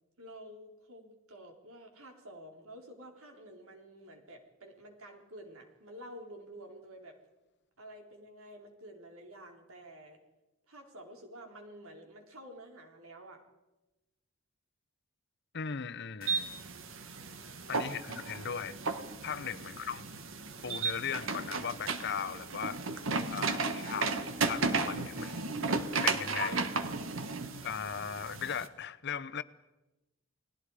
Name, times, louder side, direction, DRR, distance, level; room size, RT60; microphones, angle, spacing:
voice 1, 0.2-7.2 7.8-10.2 10.7-13.4 19.6-20.0, right 1 dB, 85° right, 4.1 m, -50 dB
voice 2, 15.5-16.5 17.7-18.8 19.2-20.0 20.6-22.8 23.3-24.1 24.4-25.5 26.0-26.7 27.6-29.4, left 7 dB, 55° left, 0.8 m, -38 dB
sound 1, 16.2-28.7, right 4 dB, 65° right, 1.6 m, -34 dB
30.0 x 19.5 x 5.0 m
head